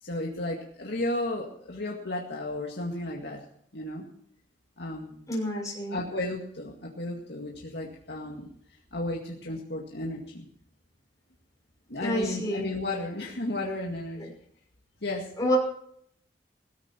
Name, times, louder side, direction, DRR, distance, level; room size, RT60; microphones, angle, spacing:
voice 1, 0.0-3.4 3.7-4.1 4.8-5.2 5.9-8.5 8.9-10.5 11.9-14.3 15.0-15.3, left 1 dB, 65° left, -1 dB, 2.1 m, -33 dB
voice 2, 5.3-6.0 12.0-12.7 14.2-14.3 15.4-15.6, equal, 20° left, -3 dB, 5.9 m, -28 dB
17.5 x 14.5 x 4.5 m, 0.67 s
head